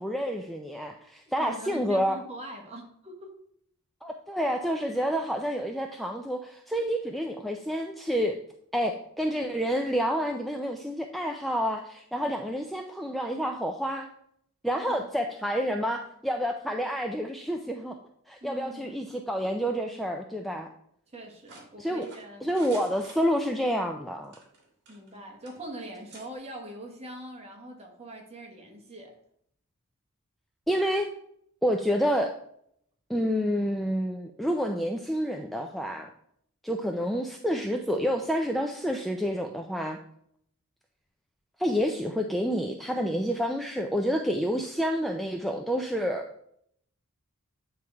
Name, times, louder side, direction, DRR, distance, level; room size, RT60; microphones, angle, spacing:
voice 1, 0.0-2.2 4.0-8.4 8.7-14.1 14.6-18.0 18.3-20.7 21.8-22.1 22.4-24.3 30.7-31.1 31.6-32.3 33.1-36.1 36.6-40.0 41.6-46.3, equal, ahead, 3 dB, 0.3 m, -29 dB
voice 2, 1.4-3.4 4.9-5.1 12.2-12.6 14.9-15.1 18.4-19.2 21.1-22.5 24.9-29.2, right 1 dB, 30° right, 1 dB, 1.3 m, -43 dB
sound 1, 21.5-23.7 24.2-25.2 25.5-25.6 26.1-26.3, right 3 dB, 50° right, 1.8 m, -50 dB
8.9 x 3.2 x 4.6 m, 0.69 s
head